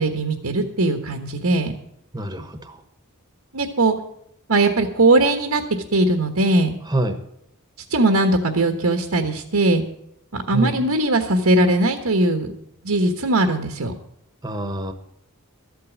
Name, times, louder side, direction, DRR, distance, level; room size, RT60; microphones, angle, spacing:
voice 1, 0.0-1.7 3.5-3.9 4.5-5.6 5.9-6.7 7.9-9.8 10.3-12.5 12.8-13.9, right 2 dB, 85° right, 5 dB, 1.3 m, -19 dB
voice 2, 2.1-2.8 6.9-7.2 10.5-10.8 14.4-14.9, right 1 dB, 15° right, 8 dB, 1.1 m, -26 dB
13.5 x 8.5 x 7.2 m, 0.76 s
head